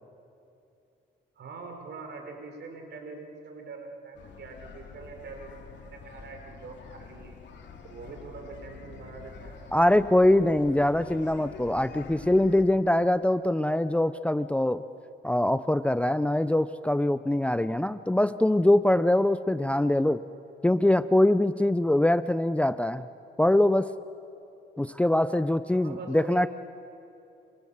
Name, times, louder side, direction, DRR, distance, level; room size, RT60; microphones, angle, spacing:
voice 1, 1.4-7.4 7.8-9.7 25.8-26.5, right 4 dB, 60° right, 4 dB, 5.0 m, -43 dB
sound 1, 4.1-12.6, left 5 dB, 65° left, 3.3 m, -46 dB
voice 2, 9.7-14.8 15.2-20.2 20.6-23.0 23.4-23.9 24.8-26.5, left 1 dB, 5° left, 14 dB, 0.5 m, -23 dB
27.5 x 27.5 x 7.2 m, 2.8 s
cardioid pair, 90°, 20 cm